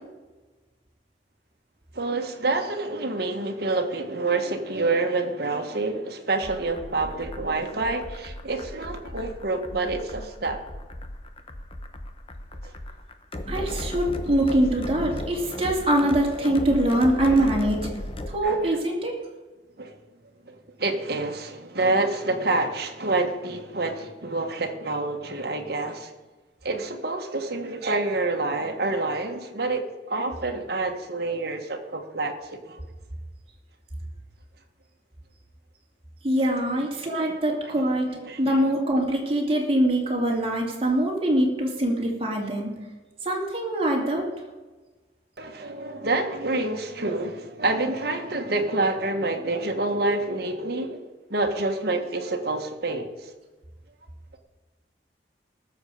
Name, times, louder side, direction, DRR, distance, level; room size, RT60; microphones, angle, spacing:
voice 1, 1.9-10.6 12.6-12.7 18.4-18.8 19.8-19.9 20.5-26.1 26.6-32.8 37.2-37.7 38.1-38.7 45.4-51.0 51.3-53.3, right 2 dB, 60° right, 4 dB, 1.6 m, -28 dB
sound 1, 6.4-18.4, left 1 dB, 30° left, 0.9 m, -36 dB
voice 2, 13.5-17.8 18.3-19.1 36.2-42.7 43.2-44.3, right 1 dB, 35° right, -1 dB, 2.7 m, -23 dB
18.5 x 7.4 x 5.0 m, 1.2 s
head